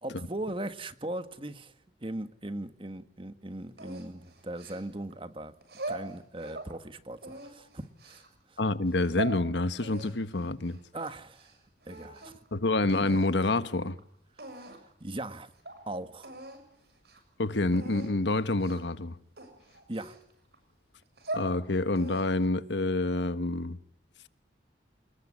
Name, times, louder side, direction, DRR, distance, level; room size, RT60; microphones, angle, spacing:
voice 1, 0.0-1.7 2.0-5.5 5.9-8.2 8.5-8.6 10.9-11.5 11.9-12.4 15.0-15.5 15.9-16.3 19.9-20.2, right 1 dB, 30° right, 1.6 m, -39 dB
sound 1, 3.8-5.1 5.6-6.7 7.2-8.3 8.8-9.4 9.8-11.6 11.8-12.5 12.9-13.3 14.0-14.1 14.4-14.9 15.3-15.4 15.7-15.8 16.2-16.6 17.0-17.2 17.7-18.1 18.6-18.9 19.4-20.6 21.0-21.5 22.0-22.5, right 2 dB, 65° right, 6.9 m, -41 dB
voice 2, 8.6-10.8 12.5-14.0 17.4-19.1 21.3-23.8, left 2 dB, 90° left, 1.3 m, -27 dB
28.0 x 20.5 x 9.9 m
head